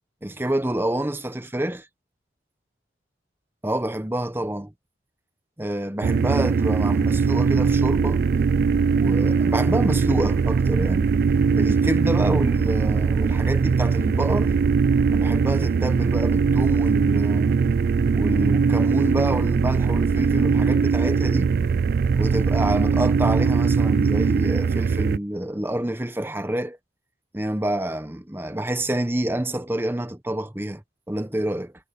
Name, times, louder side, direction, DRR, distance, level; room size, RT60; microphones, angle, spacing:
voice 1, 0.2-1.9 3.6-4.7 5.6-8.2 8.9-11.1 11.5-14.6 15.1-17.6 18.1-21.5 22.1-26.8 27.3-30.8 31.1-31.7, right 1 dB, 15° right, 0.9 m, -27 dB
sound 1, 6.0-25.2, right 5 dB, 55° right, 0.3 m, -20 dB
head